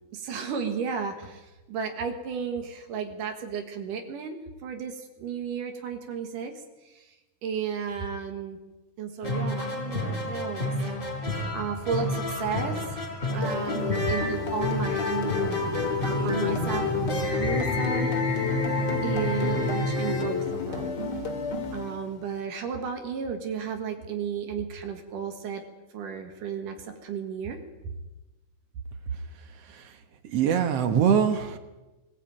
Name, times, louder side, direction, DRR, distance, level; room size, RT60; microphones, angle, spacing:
voice 1, 0.1-6.5 6.8-7.2 7.4-8.6 9.0-10.7 11.5-13.0 13.3-15.6 16.0-18.7 19.0-21.0 21.7-25.6 25.9-27.6, right 6 dB, 80° right, 5 dB, 3.2 m, -33 dB
sound 1, 9.2-21.1, left 1 dB, 15° left, 4.4 m, -31 dB
Car, 11.0-17.9, left 2 dB, 75° left, 3.5 m, -38 dB
sound 2, 13.4-22.3, left 5 dB, 35° left, 2.2 m, -31 dB
voice 2, 30.2-31.6, right 8 dB, 60° right, 9 dB, 2.0 m, -23 dB
20.0 x 15.0 x 8.9 m, 1.1 s
omnidirectional pair, 3.7 m